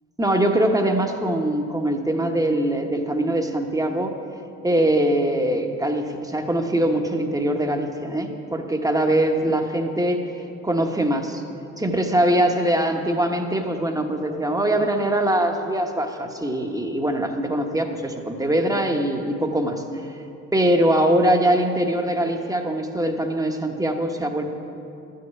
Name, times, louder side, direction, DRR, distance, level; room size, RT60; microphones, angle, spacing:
voice 1, 0.2-4.1 4.6-10.2 10.6-11.4 11.8-19.8 20.5-24.4, right 1 dB, 10° right, 4 dB, 1.1 m, -22 dB
11.5 x 6.6 x 9.4 m, 2.7 s
cardioid pair, 90°, 30 cm